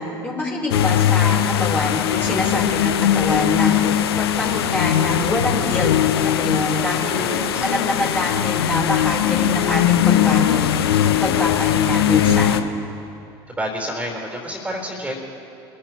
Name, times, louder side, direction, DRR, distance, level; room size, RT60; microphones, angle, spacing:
voice 1, 0.0-5.9 6.2-7.3 7.6-10.7 11.0-12.6, left 1 dB, 15° left, -4 dB, 4.0 m, -25 dB
sound 1, 0.7-12.6, left 10 dB, 70° left, 0.6 m, -20 dB
voice 2, 7.1-7.7 13.5-15.2, equal, 10° right, 0 dB, 4.1 m, -29 dB
25.5 x 15.0 x 3.0 m, 2.8 s
figure-of-eight pair, 70°, 13 cm